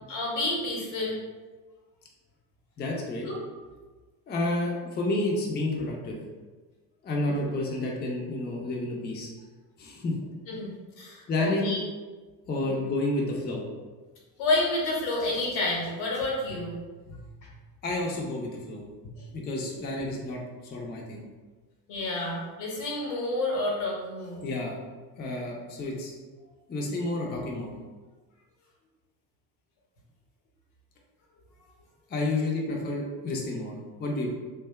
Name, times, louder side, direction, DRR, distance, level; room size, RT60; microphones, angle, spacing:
voice 1, 0.1-1.2 3.2-3.4 7.2-7.6 10.5-11.8 12.6-12.8 14.4-16.8 19.2-19.3 19.7-19.8 21.9-24.5, left 2 dB, 70° left, -3 dB, 1.0 m, -30 dB
voice 2, 2.8-3.3 4.3-6.2 7.0-9.3 9.8-10.1 11.3-11.8 12.5-13.6 17.1-17.2 17.8-20.4 20.7-21.2 24.4-24.7 25.2-26.1 26.7-27.7 32.1-34.3, left 2 dB, 20° left, -2 dB, 0.5 m, -30 dB
2.6 x 2.2 x 2.2 m, 1.3 s
hypercardioid pair, 60°, 49 cm